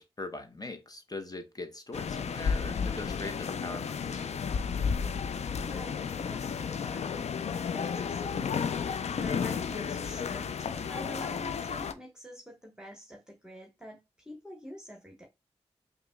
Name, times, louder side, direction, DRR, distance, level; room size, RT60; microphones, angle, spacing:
voice 1, 0.0-4.2, left 2 dB, 35° left, 0.9 m, -41 dB
sound 1, 1.9-11.9, left 6 dB, 75° left, 0.4 m, -32 dB
voice 2, 5.6-14.0 14.2-15.3, equal, 5° right, 1.2 m, -47 dB
5.0 x 2.9 x 2.3 m
cardioid pair, 40°, 11 cm